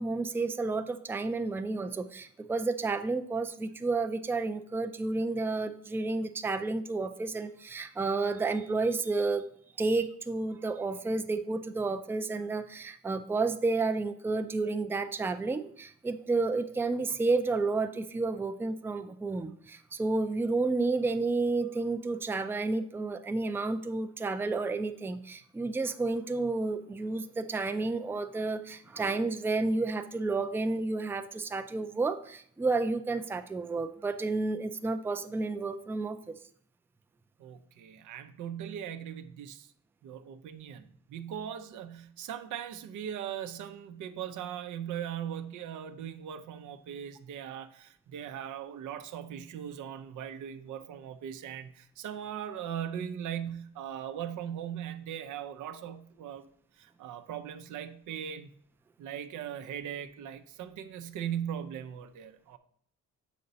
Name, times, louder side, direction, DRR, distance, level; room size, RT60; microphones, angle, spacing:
voice 1, 0.0-9.5 9.8-36.3, right 3 dB, 10° right, 8 dB, 0.4 m, -31 dB
voice 2, 37.4-39.7 40.0-56.5 56.7-58.5 59.0-62.6, right 9 dB, 80° right, 8 dB, 0.6 m, -39 dB
6.7 x 5.2 x 4.0 m, 0.63 s
cardioid pair, 90°, 30 cm